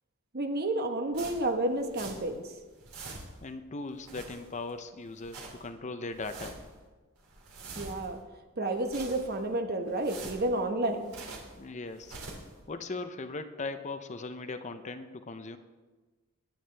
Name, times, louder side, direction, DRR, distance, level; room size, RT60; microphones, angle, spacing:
voice 1, 0.3-2.5 7.8-8.2 8.6-11.2, right 1 dB, 45° right, 6 dB, 1.1 m, -30 dB
sound 1, 1.1-2.4 2.7-3.5 3.9-4.7 5.1-5.7 6.1-6.8 7.2-8.2 8.7-9.5 9.9-11.6 11.9-12.6, right 3 dB, 80° right, 2.7 m, -45 dB
voice 2, 3.4-6.6 11.6-12.2 12.7-15.6, left 3 dB, 35° left, 9 dB, 0.6 m, -39 dB
20.5 x 9.2 x 3.4 m, 1.3 s
head